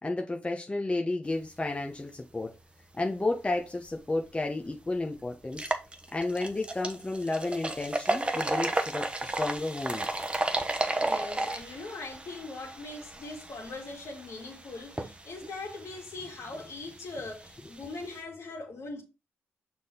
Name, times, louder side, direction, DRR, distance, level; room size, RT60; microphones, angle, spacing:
voice 1, 0.0-2.5 2.9-5.6 6.1-10.1, left 2 dB, 20° left, 1.0 m, -32 dB
sound 1, 4.2-4.3 4.7-4.8 5.4-18.2, right 2 dB, 20° right, 0.9 m, -34 dB
voice 2, 11.0-19.0, left 3 dB, 65° left, 2.1 m, -41 dB
6.2 x 3.7 x 4.4 m
supercardioid pair, 55°, 5 cm